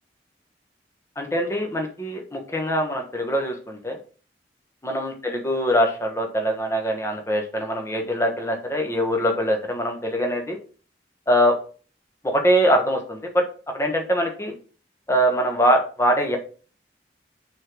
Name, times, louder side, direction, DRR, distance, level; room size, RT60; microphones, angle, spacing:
voice 1, 1.2-4.0 4.8-10.6 11.3-11.5 12.2-13.4 13.7-14.5 15.1-16.4, equal, 15° left, 3 dB, 1.1 m, -23 dB
6.2 x 3.8 x 6.1 m, 0.40 s
head